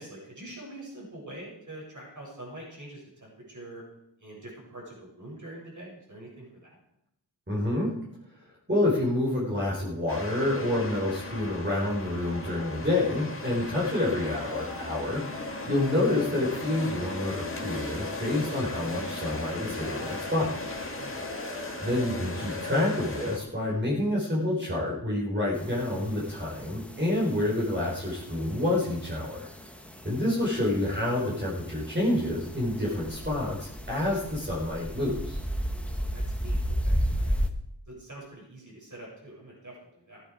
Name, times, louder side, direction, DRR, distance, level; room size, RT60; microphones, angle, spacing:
voice 1, 0.0-3.8 4.2-6.8 20.9-21.2 30.7-30.8 35.8-37.4 37.9-40.2, right 1 dB, 45° right, -3 dB, 7.1 m, -45 dB
voice 2, 7.5-7.9 8.7-20.6 21.8-29.5 30.0-35.4, left 1 dB, 25° right, -5 dB, 4.2 m, -28 dB
sound 1, 10.1-23.4, left 2 dB, 30° left, 2.1 m, -37 dB
sound 2, 14.5-15.0 15.3-15.5 15.8-16.3 16.7-16.8 17.2-17.7 18.0-18.2 18.5-19.0 19.3-19.5 19.8-20.3 20.7-20.8 21.2-21.7 22.0-22.2 22.5-22.8, left 5 dB, 75° left, 2.3 m, -42 dB
sound 3, 25.5-37.5, equal, 5° left, 1.4 m, -34 dB
16.0 x 11.0 x 5.0 m, 0.80 s
wide cardioid pair, 70°, 43 cm